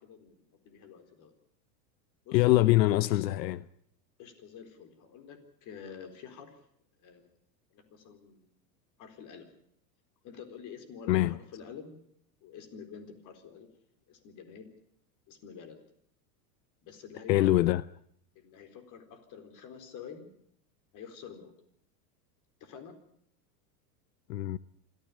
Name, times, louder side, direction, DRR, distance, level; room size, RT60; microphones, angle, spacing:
voice 1, 0.0-1.3 2.2-3.1 4.2-6.6 7.0-7.3 7.7-8.6 9.0-9.5 10.2-12.0 12.4-13.7 14.1-14.7 15.3-15.8 16.8-17.6 18.4-20.3 20.9-21.5 22.6-23.0, left 7 dB, 40° left, 4.2 m, -48 dB
voice 2, 2.3-3.7 11.1-11.3 17.3-17.8 24.3-24.6, left 16 dB, 80° left, 0.8 m, -24 dB
25.5 x 14.5 x 8.5 m
supercardioid pair, 145°, 49 cm